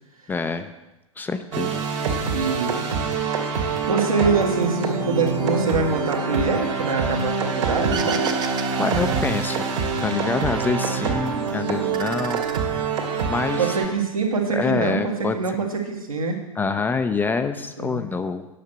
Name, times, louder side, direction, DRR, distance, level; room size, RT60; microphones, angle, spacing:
voice 1, 0.3-0.7 1.2-1.8 8.8-9.7 10.0-12.5 13.3-13.8 14.5-15.4 16.6-18.5, left 4 dB, 10° left, 8 dB, 0.4 m, -26 dB
sound 1, 1.5-13.9, right 5 dB, 55° right, 2.1 m, -25 dB
voice 2, 2.3-2.8 3.9-8.4 13.6-16.4 17.8-18.0, right 4 dB, 75° right, 0 dB, 2.0 m, -24 dB
sound 2, 7.9-10.3 10.6-11.4 11.7-13.3, right 6 dB, 25° right, 0.8 m, -33 dB
9.9 x 6.5 x 6.5 m, 1.0 s
figure-of-eight pair, 95°, 18 cm